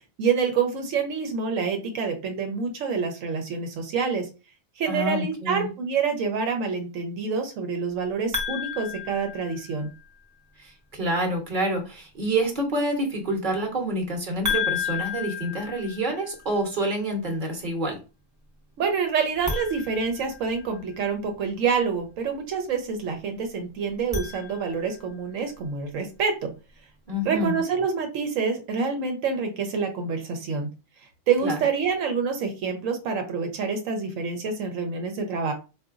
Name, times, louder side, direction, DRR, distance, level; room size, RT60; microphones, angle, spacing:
voice 1, 0.2-4.3 4.8-9.9 13.8-13.9 18.8-26.5 27.2-30.7 31.3-35.5, right 5 dB, 85° right, 5 dB, 1.0 m, -27 dB
voice 2, 4.9-5.7 10.6-18.0 27.1-27.6 31.4-31.6, right 1 dB, 45° right, 2 dB, 0.9 m, -27 dB
sound 1, 8.3-10.0 14.4-16.5 19.4-21.0 23.9-25.1, left 6 dB, 20° right, 0.6 m, -32 dB
3.8 x 2.5 x 2.4 m, 0.31 s
omnidirectional pair, 1.3 m